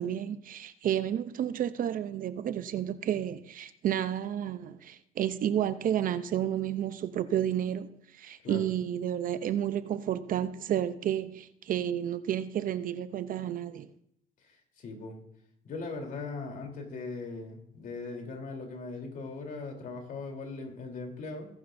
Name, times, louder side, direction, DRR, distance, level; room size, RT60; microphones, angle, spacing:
voice 1, 0.0-13.9, right 10 dB, 55° right, 0.7 m, -31 dB
voice 2, 14.4-15.2 15.6-21.5, left 3 dB, 55° left, 3.5 m, -39 dB
20.0 x 11.0 x 2.7 m
cardioid pair, 110°, 17 cm